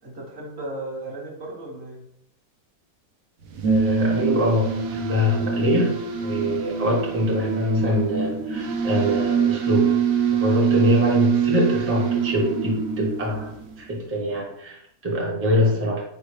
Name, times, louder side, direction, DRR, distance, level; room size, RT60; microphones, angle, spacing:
voice 1, 0.0-2.0, right 2 dB, 50° right, -2 dB, 1.2 m, -35 dB
sound 1, 3.4-13.9, right 7 dB, 75° right, 1.0 m, -24 dB
voice 2, 3.6-9.9 10.4-13.5 13.8-16.0, left 1 dB, 10° right, -3 dB, 0.6 m, -24 dB
4.7 x 3.2 x 3.1 m, 0.76 s
omnidirectional pair, 1.6 m